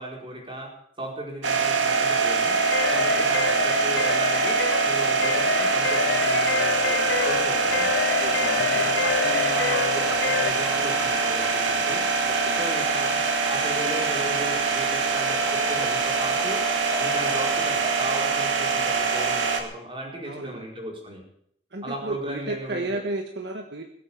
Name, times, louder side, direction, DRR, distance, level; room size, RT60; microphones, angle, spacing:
voice 1, 0.0-2.6 2.9-7.9 8.5-12.1 12.6-13.2 13.5-16.6 17.0-21.2 21.8-23.0, right 1 dB, 30° right, -1 dB, 4.7 m, -36 dB
sound 1, 1.4-19.6, right 4 dB, 80° right, 2.2 m, -24 dB
sound 2, 2.6-10.5, left 5 dB, 60° left, 0.6 m, -27 dB
sound 3, 6.7-19.5, left 1 dB, ahead, 2.7 m, -42 dB
voice 2, 8.2-8.9 12.2-12.6 20.3-20.6 21.7-23.8, right 2 dB, 60° right, 3 dB, 1.5 m, -33 dB
21.0 x 8.3 x 7.2 m, 0.69 s
head